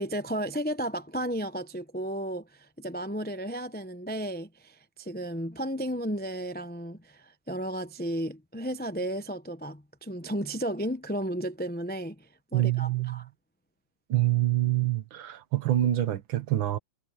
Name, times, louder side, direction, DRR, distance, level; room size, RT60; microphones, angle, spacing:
voice 1, 0.0-13.3, right 1 dB, 15° left, 0.3 m, -33 dB
voice 2, 12.5-13.2 14.1-16.8, right 14 dB, 80° right, 1.9 m, -26 dB
omnidirectional pair, 2.1 m